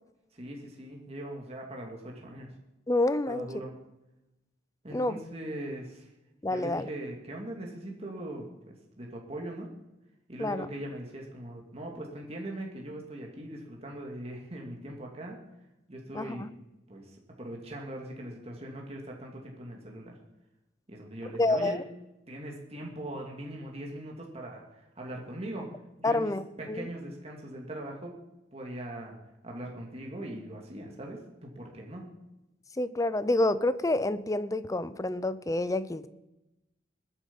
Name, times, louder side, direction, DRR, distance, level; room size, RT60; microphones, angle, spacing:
voice 1, 0.3-2.5 3.3-3.7 4.8-6.1 6.5-9.7 10.3-15.4 15.9-16.5 16.9-20.1 20.9-21.8 22.3-25.7 26.0-26.3 26.6-28.2 28.5-29.2 29.4-32.1, right 1 dB, 35° right, 0 dB, 2.2 m, -40 dB
voice 2, 2.9-3.5 4.9-5.2 6.4-6.9 10.4-10.7 16.1-16.5 21.4-21.8 26.0-26.9 32.8-36.1, left 2 dB, 20° left, 14 dB, 0.6 m, -28 dB
21.0 x 8.1 x 5.4 m, 0.96 s
head